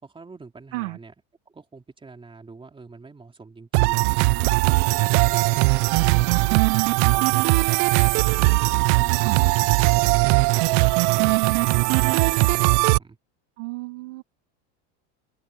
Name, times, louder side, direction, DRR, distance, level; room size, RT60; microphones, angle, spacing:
voice 1, 0.0-1.1 1.4-4.0 4.5-6.6 7.1-7.9 8.3-9.4 9.8-13.2, right 4 dB, 15° right, 3.2 m, -46 dB
sound 1, 3.7-13.0, right 26 dB, 65° right, 0.6 m, -19 dB
voice 2, 13.6-14.2, right 24 dB, 85° right, 1.9 m, -32 dB
supercardioid pair, 125°, 36 cm